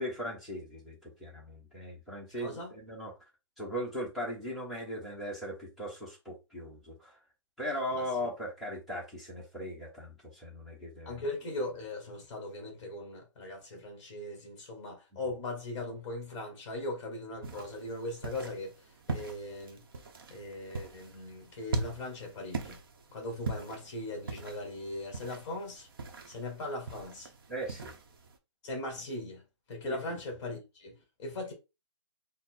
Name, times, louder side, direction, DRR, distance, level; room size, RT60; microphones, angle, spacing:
voice 1, 0.0-3.1 3.6-7.2 7.6-11.2 27.5-27.9 30.1-30.2, equal, ahead, 1.0 m, -38 dB
voice 2, 2.4-2.7 7.9-8.0 11.0-19.8 20.3-22.8 23.1-25.9 26.3-27.3 28.6-31.5, left 2 dB, 15° left, 1.5 m, -39 dB
sound 1, 17.4-28.4, right 3 dB, 45° right, 0.9 m, -41 dB
4.2 x 2.1 x 4.3 m
hypercardioid pair, 175°, 16 cm